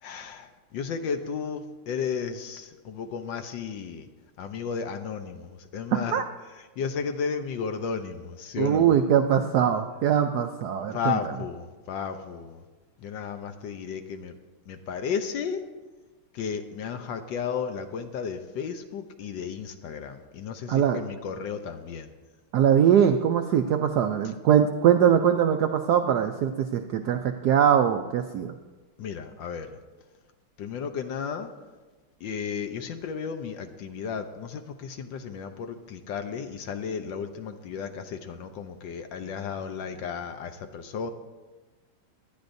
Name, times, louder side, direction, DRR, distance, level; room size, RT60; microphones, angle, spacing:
voice 1, 0.0-4.1 4.4-6.2 6.8-8.9 10.9-12.6 13.0-14.3 14.7-15.6 16.3-22.1 29.0-29.8 30.6-31.5 32.2-41.1, left 6 dB, 70° left, 7 dB, 1.3 m, -33 dB
voice 2, 5.9-6.2 8.6-11.2 20.7-21.0 22.5-28.5, right 9 dB, 80° right, 7 dB, 0.9 m, -22 dB
19.0 x 11.5 x 2.6 m, 1.2 s
omnidirectional pair, 2.3 m